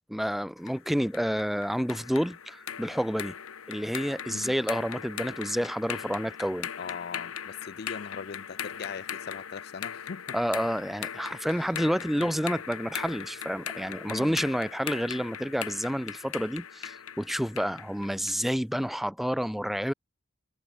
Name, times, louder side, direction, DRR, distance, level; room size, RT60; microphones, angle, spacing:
voice 1, 0.1-3.3 3.7-6.7 10.3-19.9, equal, ahead, 0.5 m, -29 dB
sound 1, 0.7-18.5, left 9 dB, 90° left, 1.0 m, -39 dB
voice 2, 6.8-10.2 12.1-12.3 14.1-14.4, left 6 dB, 50° left, 0.4 m, -40 dB
head